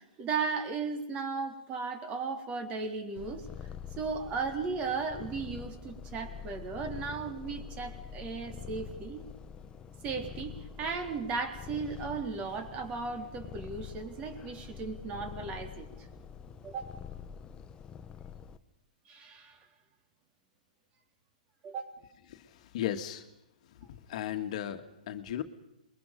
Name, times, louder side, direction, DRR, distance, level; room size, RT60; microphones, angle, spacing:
voice 1, 0.0-3.5 4.0-9.2 10.0-16.1 16.6-16.9 19.1-19.6 21.6-21.9, right 4 dB, 30° right, 6 dB, 3.7 m, -36 dB
Purr, 3.2-18.6, left 7 dB, 20° left, 1.1 m, -45 dB
voice 2, 22.3-23.3 23.7-25.4, left 11 dB, 55° left, 8 dB, 1.7 m, -36 dB
27.5 x 22.0 x 5.3 m, 0.86 s
hypercardioid pair, 130°, 4 cm